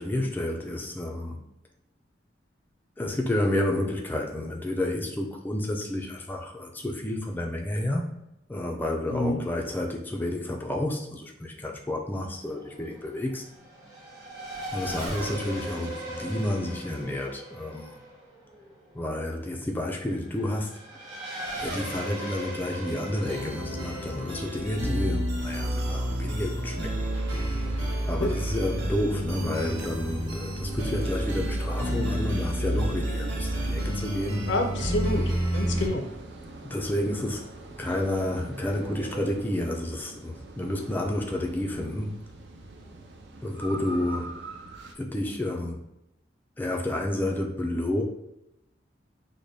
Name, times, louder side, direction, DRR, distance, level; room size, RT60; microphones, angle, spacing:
voice 1, 0.0-1.4 3.0-8.1 8.5-13.4 14.7-18.0 18.9-20.7 21.6-27.1 28.1-34.5 36.6-37.5 37.8-42.1 43.4-44.4 45.0-45.8 46.6-48.0, left 1 dB, 10° left, 0 dB, 0.3 m, -30 dB
Race car auto racing / Accelerating revving vroom, 12.1-26.2, right 1 dB, 25° right, 1.0 m, -39 dB
sound 1, 23.2-35.9, equal, 80° right, 1.1 m, -29 dB
sound 2, 25.4-44.9, right 2 dB, 65° right, 0.5 m, -43 dB
voice 2, 34.5-36.1, left 2 dB, 70° left, 4 dB, 0.5 m, -28 dB
4.8 x 2.2 x 2.7 m, 0.87 s
head